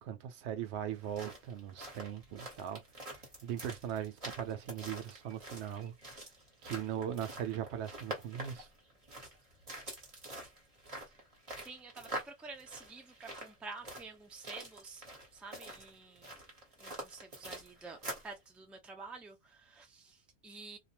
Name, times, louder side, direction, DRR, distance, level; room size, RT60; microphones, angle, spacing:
voice 1, 0.0-5.9 6.6-8.7, right 10 dB, 80° right, 0.9 m, -39 dB
sound 1, 0.9-18.4, right 1 dB, 35° right, 1.2 m, -46 dB
voice 2, 11.6-15.1 15.3-16.4 16.8-18.0 18.2-20.8, right 3 dB, ahead, 0.5 m, -49 dB
2.5 x 2.1 x 2.7 m
omnidirectional pair, 1.1 m